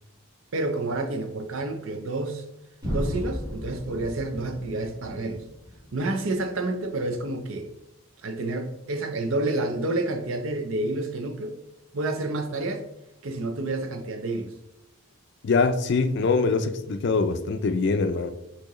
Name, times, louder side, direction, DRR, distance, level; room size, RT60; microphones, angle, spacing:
voice 1, 0.5-2.4 2.9-5.4 5.9-7.7 8.2-11.6 11.9-12.8 13.2-14.5, right 2 dB, 70° right, 0.6 m, -29 dB
sound 1, 2.8-6.8, equal, 20° right, 1.2 m, -35 dB
voice 2, 15.4-18.3, left 4 dB, 55° left, 0.4 m, -23 dB
6.0 x 2.9 x 3.0 m
head